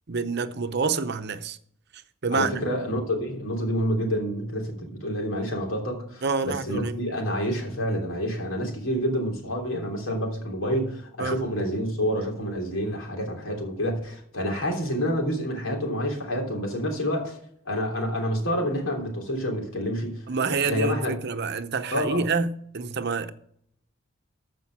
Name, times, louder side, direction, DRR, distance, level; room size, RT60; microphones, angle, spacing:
voice 1, 0.1-1.6 2.2-2.6 6.2-7.0 11.2-11.4 20.3-23.3, right 4 dB, 55° right, 0.8 m, -27 dB
voice 2, 2.3-17.4 17.6-21.1 21.9-22.3, equal, 85° left, 3.2 m, -28 dB
14.0 x 5.2 x 6.0 m
head